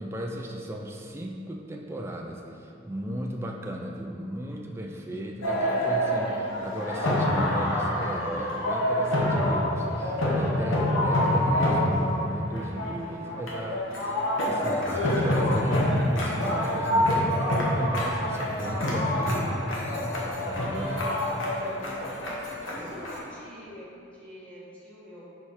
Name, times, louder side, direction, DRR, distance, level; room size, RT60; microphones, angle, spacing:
voice 1, 0.0-17.2 17.7-19.7 20.2-21.1 22.8-22.9, right 1 dB, 15° right, 1 dB, 0.3 m, -36 dB
sound 1, 5.4-23.2, left 1 dB, 90° left, 1.1 m, -26 dB
voice 2, 18.3-18.8 21.0-22.2 22.6-25.2, equal, 5° left, -8 dB, 1.2 m, -46 dB
4.9 x 4.6 x 4.3 m, 2.7 s
head